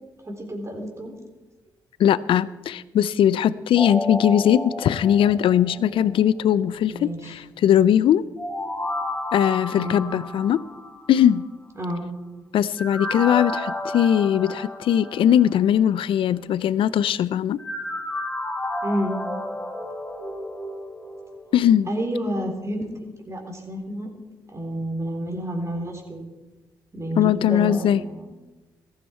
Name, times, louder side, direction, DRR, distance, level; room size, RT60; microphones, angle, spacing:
voice 1, 0.3-1.1 6.9-7.2 9.7-10.0 11.8-12.0 18.8-19.1 21.9-22.9 23.3-24.1 24.5-26.3 26.9-28.3, equal, 30° right, 2 dB, 3.8 m, -29 dB
voice 2, 2.0-8.2 9.3-10.6 11.1-11.4 12.5-17.6 21.5-21.9 27.2-28.0, left 10 dB, 70° left, 19 dB, 0.5 m, -20 dB
sound 1, 3.8-6.1 8.4-11.3 12.8-15.5 17.6-22.1 22.4-22.5, left 1 dB, 15° left, 3.3 m, -32 dB
14.5 x 13.0 x 4.5 m, 1.2 s
supercardioid pair, 55°, 9 cm